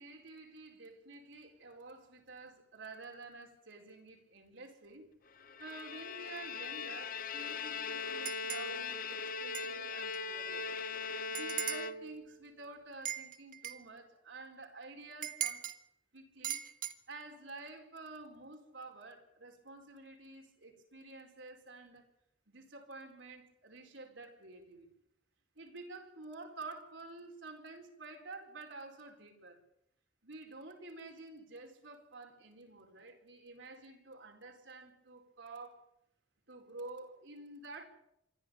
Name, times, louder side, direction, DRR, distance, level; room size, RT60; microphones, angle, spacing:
voice 1, 0.0-5.0 5.6-10.7 11.3-15.7 16.1-16.6 17.1-22.1 22.5-24.9 25.6-29.6 30.2-35.9 36.5-37.8, right 3 dB, 70° right, 4.5 m, -50 dB
Bowed string instrument, 5.4-12.4, left 4 dB, 50° left, 0.8 m, -40 dB
sound 1, 8.3-8.7 9.5-9.7 10.1-10.2 11.4-11.9 13.1-13.8 15.2-15.8 16.4-16.9, right 11 dB, 45° right, 1.4 m, -39 dB
26.5 x 12.0 x 8.8 m
head